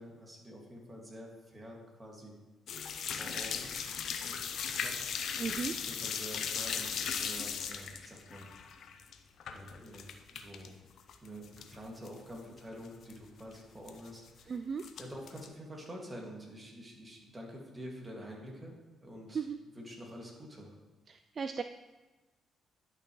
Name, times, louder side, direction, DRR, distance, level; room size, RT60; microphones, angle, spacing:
voice 1, 0.0-2.4 3.1-3.7 4.1-8.5 9.5-10.8 11.2-14.6 15.0-19.5 19.8-20.7, equal, 20° right, -2 dB, 2.2 m, -48 dB
sound 1, 2.7-10.7 11.0-11.8 12.0-12.1 12.6-12.7 12.8-13.1 13.9-14.4 14.8-15.5, left 7 dB, 65° left, 0.6 m, -37 dB
voice 2, 5.4-5.7 14.5-14.8 19.3-19.6 21.1-21.6, right 6 dB, 45° right, 8 dB, 0.3 m, -36 dB
11.0 x 6.0 x 3.2 m, 1.2 s
cardioid pair, 90°, 0 cm